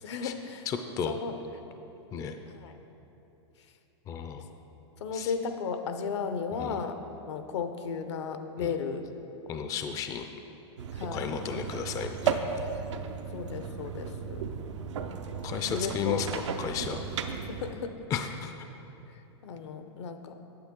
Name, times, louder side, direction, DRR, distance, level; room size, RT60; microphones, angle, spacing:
voice 1, 0.0-0.7 1.1-1.3 2.6-2.8 5.0-7.0 7.3-9.0 10.9-11.2 13.3-14.5 15.7-16.2 17.5-17.9 19.4-20.3, left 6 dB, 75° left, 8 dB, 0.7 m, -34 dB
voice 2, 0.7-1.2 2.1-2.4 4.1-4.5 5.1-5.3 6.6-6.8 8.6-8.7 9.5-10.3 11.1-12.6 15.4-17.0 18.1-18.5, left 6 dB, 25° left, 7 dB, 0.4 m, -34 dB
sound 1, 10.8-17.7, right 6 dB, 90° right, 0.6 m, -35 dB
8.9 x 7.5 x 3.7 m, 3.0 s
hypercardioid pair, 130°, 15 cm